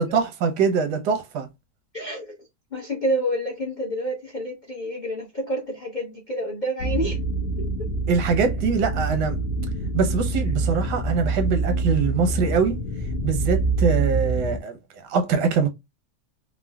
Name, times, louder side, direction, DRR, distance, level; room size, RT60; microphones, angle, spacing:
voice 1, 0.0-1.5 8.1-9.4 9.9-12.8 13.2-14.8 15.1-15.7, right 5 dB, 90° right, 1.3 m, -23 dB
voice 2, 1.9-2.4 2.7-7.2 7.6-7.7, equal, 60° left, 0.4 m, -28 dB
sound 1, 6.8-14.6, right 3 dB, 90° left, 1.2 m, -26 dB
3.6 x 2.0 x 2.2 m
omnidirectional pair, 1.8 m